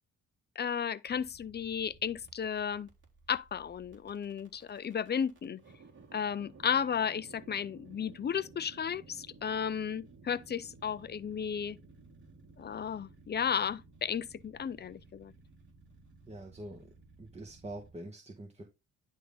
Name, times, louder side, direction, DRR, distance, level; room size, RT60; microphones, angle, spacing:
voice 1, 0.6-2.9 3.3-5.6 6.1-11.8 12.6-15.3, left 7 dB, 35° left, 0.6 m, -34 dB
sound 1, 1.1-17.9, right 3 dB, 40° right, 3.7 m, -57 dB
voice 2, 16.3-16.8 17.2-18.6, right 1 dB, 20° right, 1.7 m, -45 dB
11.0 x 3.7 x 3.9 m
cardioid pair, 90°, 30 cm